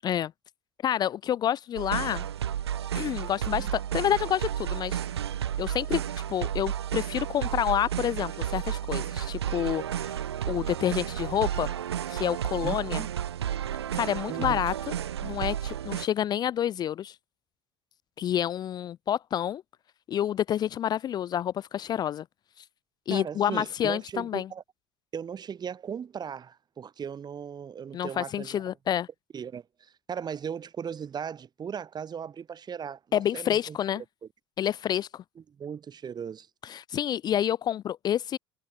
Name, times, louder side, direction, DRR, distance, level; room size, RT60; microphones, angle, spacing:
voice 1, 0.8-2.3 2.9-5.0 5.6-6.0 6.3-10.2 10.5-11.7 12.1-13.0 13.9-14.9 15.2-17.2 18.2-19.6 20.1-22.2 23.1-24.5 27.9-29.1 33.1-34.0 34.6-35.2 36.6-38.4, left 10 dB, 30° left, 0.4 m, -28 dB
sound 1, 1.8-16.1, right 10 dB, 70° right, 2.5 m, -32 dB
voice 2, 12.6-13.1 14.3-14.6 23.1-24.6 25.1-28.6 29.3-33.8 35.6-36.5, right 7 dB, 30° right, 5.2 m, -37 dB
figure-of-eight pair, 65°, 14 cm